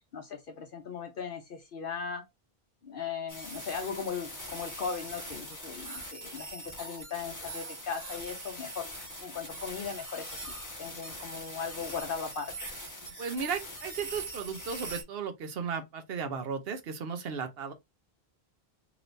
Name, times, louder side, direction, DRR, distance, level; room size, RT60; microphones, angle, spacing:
voice 1, 0.1-2.2 2.8-8.9 9.2-10.5 10.8-12.5, left 6 dB, 65° left, 0.8 m, -38 dB
sound 1, 3.3-15.0, right 1 dB, 20° left, 1.1 m, -42 dB
voice 2, 13.2-17.7, right 6 dB, 70° right, 0.9 m, -35 dB
3.0 x 2.6 x 3.1 m
omnidirectional pair, 1.0 m